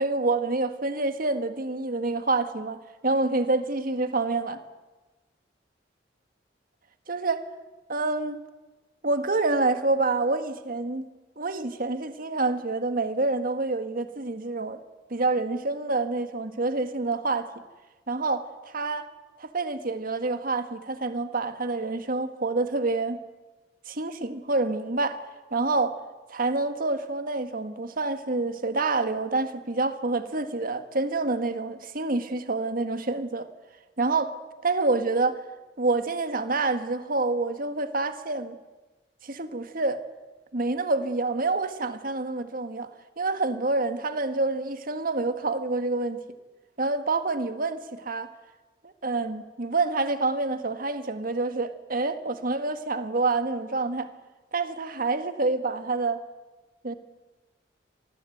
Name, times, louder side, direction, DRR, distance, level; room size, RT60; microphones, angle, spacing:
voice 1, 0.0-4.6 7.1-7.5 7.9-8.4 9.0-11.0 11.4-14.8 15.1-17.5 18.1-19.1 19.4-23.2 23.9-25.2 25.5-26.0 26.3-33.5 34.0-34.4 34.6-35.4 35.8-38.6 39.2-40.0 40.5-46.2 46.8-48.3 48.8-54.1 54.5-56.2 56.8-56.9, right 3 dB, 55° right, 1.7 m, -27 dB
26.5 x 20.0 x 9.3 m
head